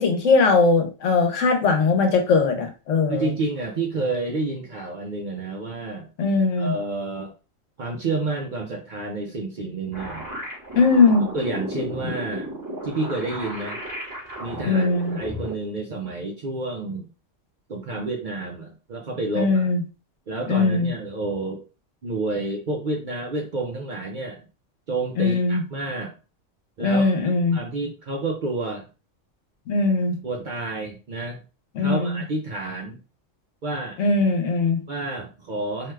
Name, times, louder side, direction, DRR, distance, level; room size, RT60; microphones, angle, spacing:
voice 1, 0.0-3.3 6.2-6.7 10.7-11.3 14.6-15.2 19.3-19.8 20.5-20.9 25.2-25.6 26.8-27.6 29.7-30.2 31.8-32.2 34.0-34.8, left 4 dB, 75° left, 4 dB, 1.1 m, -20 dB
voice 2, 3.1-6.1 6.6-7.3 7.8-10.3 11.3-12.5 12.8-13.8 14.4-17.1 17.7-19.7 20.3-21.6 22.0-24.4 24.9-26.1 26.8-28.8 30.2-31.4 31.8-33.0 33.6-34.0 34.9-35.9, right 2 dB, 55° right, 0 dB, 0.5 m, -29 dB
sound 1, 9.9-15.5, right 1 dB, 15° right, 0.9 m, -33 dB
2.7 x 2.3 x 3.1 m, 0.33 s
omnidirectional pair, 1.3 m